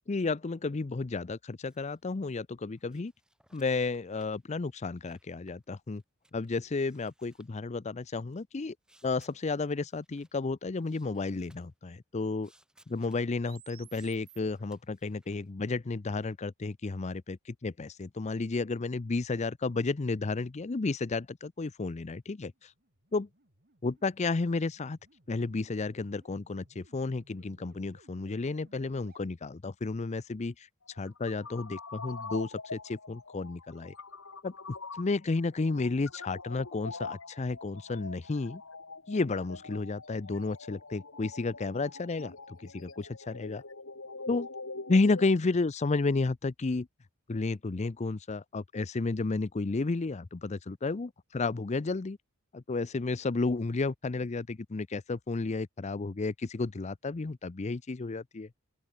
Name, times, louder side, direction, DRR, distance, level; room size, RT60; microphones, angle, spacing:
voice 1, 0.1-3.1 3.5-6.0 6.3-8.7 9.0-12.5 12.9-22.5 23.1-23.3 23.8-25.0 25.3-30.7 31.0-33.9 34.4-34.5 34.9-38.6 39.1-43.6 44.3-44.5 44.9-46.9 47.3-52.2 52.5-58.6, left 3 dB, 30° left, 0.5 m, -32 dB
sound 1, 1.6-2.2 2.5-6.5 6.8-7.5 8.3-10.5 10.8-11.7 12.4-13.5 13.9-15.5, right 1 dB, 5° right, 6.5 m, -66 dB
sound 2, 13.4-14.4 22.5-29.3, right 5 dB, 45° right, 7.1 m, -60 dB
sound 3, 30.9-45.4, left 3 dB, 65° left, 3.3 m, -44 dB
open air
head